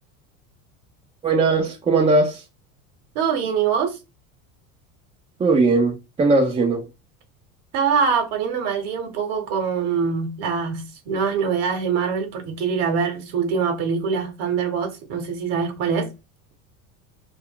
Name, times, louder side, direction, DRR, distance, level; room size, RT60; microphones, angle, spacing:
voice 1, 1.2-2.4 5.4-6.9, right 3 dB, 15° right, 0.4 m, -19 dB
voice 2, 3.1-4.0 7.7-16.1, right 6 dB, 60° right, 1.0 m, -24 dB
2.3 x 2.1 x 3.7 m
hypercardioid pair, 90°, 42 cm